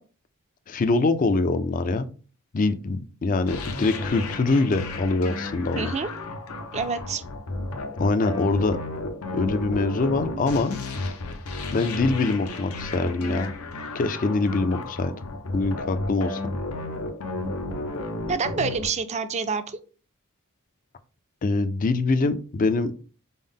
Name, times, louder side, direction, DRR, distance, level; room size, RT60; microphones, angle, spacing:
voice 1, 0.7-2.1 2.5-5.9 8.0-8.8 9.3-10.8 11.7-13.5 13.9-15.1 15.5-16.4 21.4-22.9, left 3 dB, 35° left, 10 dB, 0.4 m, -24 dB
sound 1, 3.5-18.9, left 2 dB, 80° left, 0.7 m, -33 dB
voice 2, 5.7-6.1 6.7-7.2 18.3-19.8, right 5 dB, 30° right, 10 dB, 0.4 m, -27 dB
5.4 x 2.1 x 3.5 m, 0.37 s
head